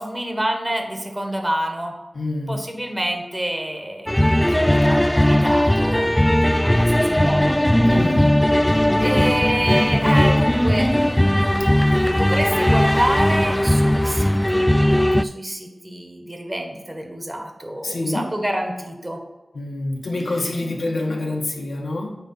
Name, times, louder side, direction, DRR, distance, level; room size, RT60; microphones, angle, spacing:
voice 1, 0.0-1.9 2.5-6.1 6.6-7.6 8.9-19.2, right 1 dB, 15° right, 3 dB, 1.6 m, -28 dB
voice 2, 2.1-2.6 7.8-8.3 17.8-18.2 19.5-22.2, left 2 dB, 90° left, -1 dB, 1.6 m, -26 dB
sound 1, 4.1-15.2, left 1 dB, 10° left, 0.3 m, -18 dB
9.2 x 3.6 x 5.9 m, 1.1 s
wide cardioid pair, 70°, 0 cm